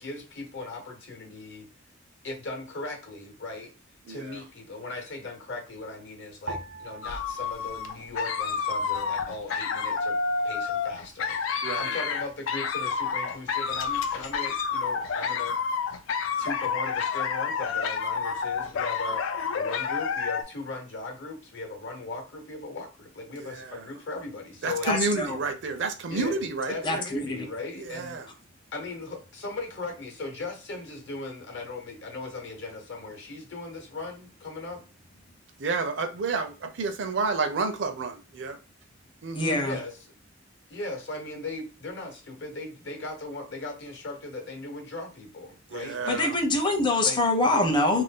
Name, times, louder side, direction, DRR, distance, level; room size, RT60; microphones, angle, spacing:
voice 1, 0.0-1.7 2.2-3.7 4.1-10.2 10.4-15.6 16.4-19.2 19.5-24.9 26.1-26.4 26.7-28.2 28.7-34.8 39.6-39.9 40.7-46.2 47.0-47.2, left 3 dB, 65° left, 3 dB, 0.9 m, -38 dB
voice 2, 4.1-4.4 11.6-11.9 23.5-23.8 24.6-27.0 27.9-28.2 35.6-38.5 39.2-39.6 45.7-46.4, right 4 dB, 65° right, 7 dB, 0.5 m, -30 dB
sound 1, 6.5-9.0 9.2-10.2 10.8-11.2, right 2 dB, 85° right, 0.9 m, -43 dB
sound 2, 7.0-20.4, left 5 dB, 85° left, 0.4 m, -29 dB
voice 3, 24.8-25.4 26.8-27.5 39.3-39.8 46.1-48.0, left 2 dB, 25° left, 4 dB, 0.6 m, -25 dB
2.5 x 2.1 x 3.6 m, 0.32 s
head